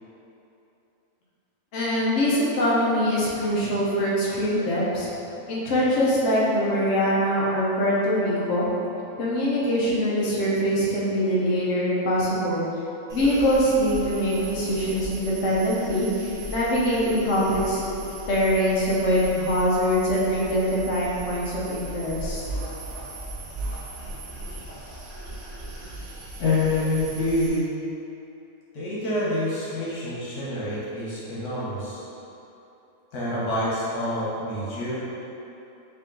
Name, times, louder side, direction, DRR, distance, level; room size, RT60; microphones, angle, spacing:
voice 1, 1.7-5.1 5.5-8.7 9.2-12.7 13.1-17.8 18.3-22.4, equal, 60° left, -6 dB, 0.9 m, -23 dB
sound 1, 13.1-27.5, right 2 dB, 50° right, 0.5 m, -37 dB
voice 2, 26.4-27.7 28.7-32.0 33.1-34.9, left 2 dB, 85° left, -8 dB, 1.5 m, -27 dB
3.7 x 2.7 x 3.7 m, 2.9 s
omnidirectional pair, 1.6 m